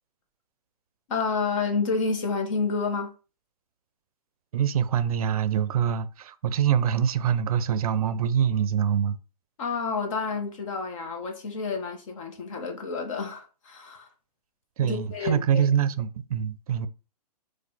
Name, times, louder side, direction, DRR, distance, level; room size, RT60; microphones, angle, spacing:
voice 1, 1.1-3.1 9.6-14.1 14.8-15.6, left 4 dB, 50° left, 1.3 m, -29 dB
voice 2, 4.5-9.2 14.8-16.9, right 8 dB, 60° right, 0.5 m, -24 dB
4.2 x 2.6 x 4.0 m
hypercardioid pair, 145°, 21 cm